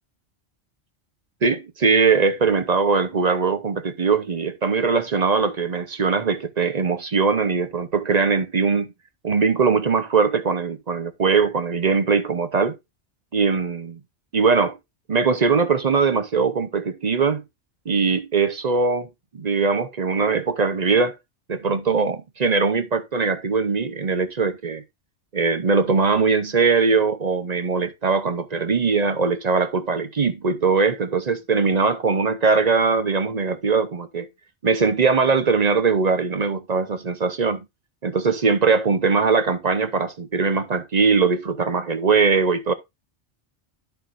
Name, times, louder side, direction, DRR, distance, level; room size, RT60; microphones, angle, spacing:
voice 1, 1.4-8.9 9.2-12.8 13.3-14.0 14.3-14.8 15.1-17.4 17.9-19.1 19.3-21.2 21.5-24.8 25.3-34.3 34.6-37.6 38.0-42.7, right 4 dB, 40° right, 0.7 m, -21 dB
11.0 x 6.8 x 2.5 m
omnidirectional pair, 1.2 m